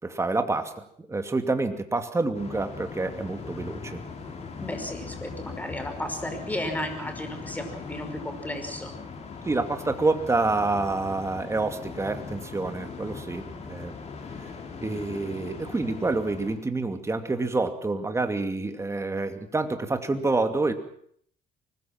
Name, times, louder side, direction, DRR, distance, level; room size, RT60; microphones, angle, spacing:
voice 1, 0.0-4.0 9.4-14.0 14.8-20.7, right 3 dB, 15° right, 7 dB, 2.6 m, -28 dB
sound 1, 2.3-16.6, left 4 dB, 40° left, 4.9 m, -40 dB
voice 2, 4.6-8.9, left 1 dB, 10° left, 6 dB, 5.4 m, -34 dB
24.5 x 20.0 x 6.0 m, 0.63 s
cardioid pair, 110°, 17 cm